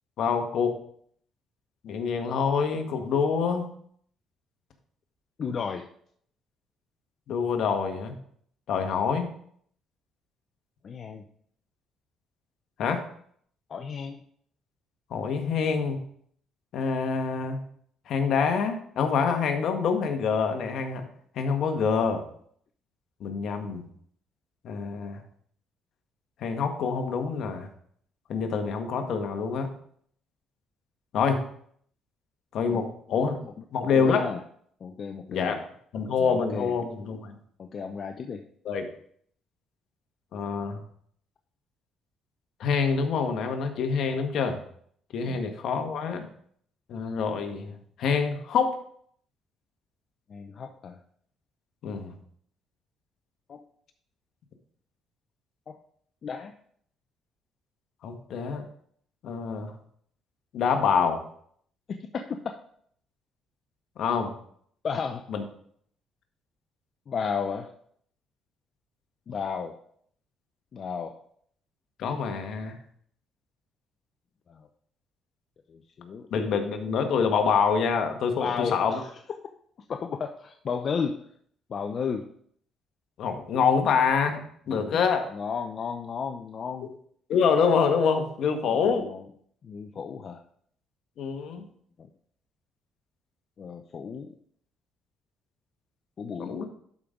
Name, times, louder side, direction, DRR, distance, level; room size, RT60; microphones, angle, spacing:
voice 1, 0.2-0.8 1.8-3.7 7.3-8.1 8.7-9.3 12.8-13.0 15.1-16.0 16.7-17.6 18.1-21.0 21.3-22.2 23.2-23.8 24.6-25.2 26.4-27.7 28.3-29.7 31.1-31.4 32.5-33.4 33.7-34.3 35.3-35.7 35.9-37.3 38.6-38.9 40.3-40.8 42.6-44.6 45.1-46.3 46.9-48.8 51.8-52.1 58.0-58.6 59.2-59.7 60.5-61.2 64.0-64.3 65.3-65.4 72.0-72.8 76.3-79.0 83.2-85.3 87.3-89.1 91.2-91.6 96.4-96.6, left 5 dB, 70° left, 5 dB, 1.4 m, -26 dB
voice 2, 5.4-5.9 10.8-11.2 13.7-14.2 32.7-32.8 33.1-34.4 34.8-35.6 36.2-36.7 37.6-38.4 50.3-51.0 53.5-53.6 55.7-55.8 56.2-56.5 61.9-62.6 64.8-65.3 67.1-67.7 69.3-69.8 70.7-71.2 74.5-74.7 75.7-76.3 78.3-79.1 79.9-81.3 81.7-82.3 84.7-85.0 85.3-86.9 88.7-89.2 89.6-90.4 91.6-91.7 92.0-92.1 93.6-94.3 96.2-96.5, left 6 dB, 50° left, 5 dB, 0.7 m, -34 dB
11.5 x 5.3 x 3.8 m, 0.63 s
cardioid pair, 95°, 0 cm